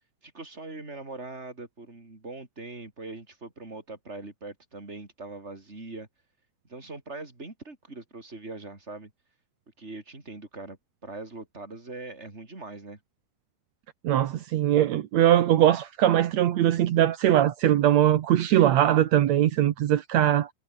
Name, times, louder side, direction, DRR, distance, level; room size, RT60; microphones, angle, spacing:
voice 1, 0.2-6.1 6.7-9.1 9.8-13.0, right 3 dB, 15° right, 4.4 m, -41 dB
voice 2, 14.0-20.5, right 12 dB, 75° right, 1.6 m, -21 dB
omnidirectional pair, 4.7 m